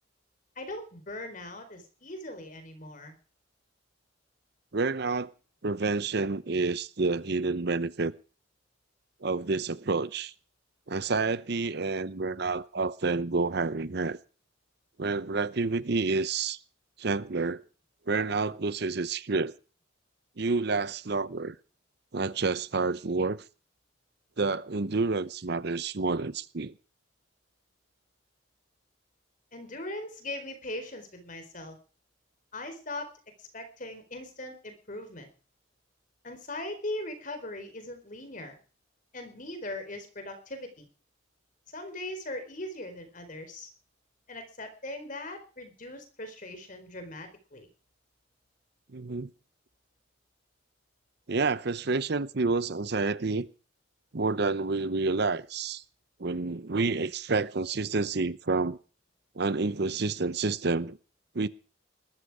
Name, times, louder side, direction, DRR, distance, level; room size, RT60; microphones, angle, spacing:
voice 1, 0.6-3.1 29.5-31.8 32.5-33.1 33.4-35.3 36.2-38.6 39.1-40.9 41.7-43.7 44.3-47.7, left 1 dB, 40° left, 4.4 m, -40 dB
voice 2, 4.7-5.3 5.6-8.1 9.2-10.3 10.9-14.2 15.0-16.6 17.0-17.6 18.1-19.5 20.4-21.5 22.1-23.4 24.4-26.7 48.9-49.3 51.3-53.5 54.1-55.8 56.2-58.8 59.4-61.0 61.3-61.5, right 3 dB, 55° right, 0.7 m, -29 dB
20.0 x 13.5 x 4.9 m
head